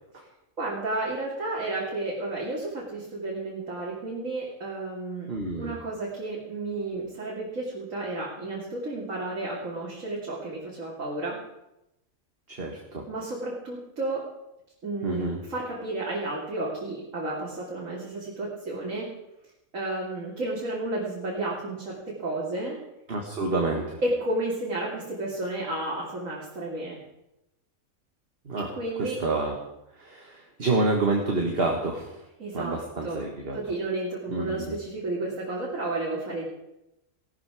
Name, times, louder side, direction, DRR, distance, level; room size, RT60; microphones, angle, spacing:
voice 1, 0.6-5.3 5.6-11.4 13.1-14.3 14.8-19.1 19.7-22.8 24.0-27.0 28.6-29.2 32.4-32.8 33.0-33.2 33.5-36.5, right 2 dB, 65° right, -5 dB, 3.1 m, -32 dB
voice 2, 5.3-5.8 12.5-13.1 15.0-15.4 23.1-24.0 28.5-28.7 29.0-29.6 30.0-32.3 32.5-33.6 34.3-34.8, right 3 dB, 45° right, 1 dB, 1.9 m, -28 dB
17.5 x 13.0 x 4.9 m, 0.89 s
omnidirectional pair, 1.4 m